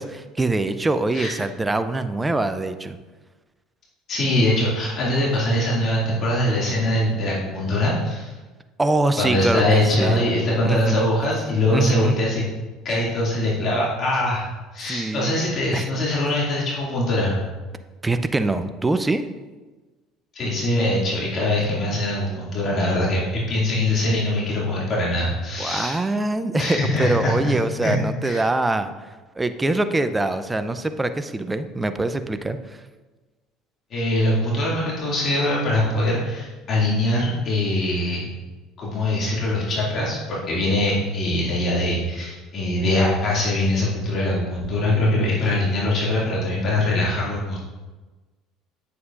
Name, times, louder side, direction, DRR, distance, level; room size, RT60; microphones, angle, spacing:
voice 1, 0.0-3.0 8.8-10.2 10.6-11.1 11.7-12.2 14.8-15.4 15.7-15.9 18.0-19.2 21.7-22.0 25.6-28.9 29.4-32.8, right 2 dB, 15° right, 10 dB, 0.5 m, -24 dB
voice 2, 4.1-8.3 9.2-12.4 12.8-14.5 14.7-17.4 20.3-26.0 26.6-27.5 27.8-28.4 33.9-38.3 38.8-47.6, left 1 dB, 45° left, -5 dB, 2.3 m, -22 dB
8.5 x 6.9 x 2.5 m, 1.3 s
hypercardioid pair, 70°, 0 cm